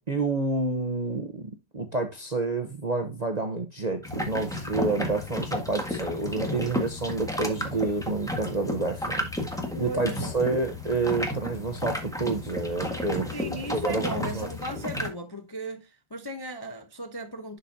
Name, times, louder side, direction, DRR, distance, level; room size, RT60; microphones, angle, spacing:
voice 1, 0.1-14.5, right 3 dB, 35° right, 0.7 m, -29 dB
sound 1, 4.0-15.1, left 1 dB, ahead, 1.4 m, -33 dB
voice 2, 9.7-10.4 13.3-17.6, right 1 dB, 20° left, 0.6 m, -36 dB
11.0 x 5.2 x 2.7 m
omnidirectional pair, 1.8 m